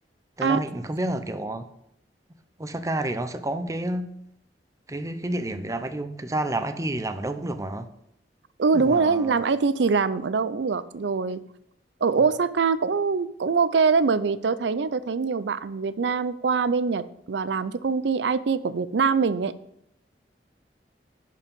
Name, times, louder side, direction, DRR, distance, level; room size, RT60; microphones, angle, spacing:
voice 1, 0.4-1.7 2.6-4.1 4.9-7.9 8.7-9.4, right 1 dB, 20° right, 10 dB, 0.6 m, -29 dB
voice 2, 8.6-11.4 12.0-19.5, right 5 dB, 80° right, 15 dB, 0.5 m, -23 dB
10.5 x 4.7 x 5.3 m, 0.76 s
head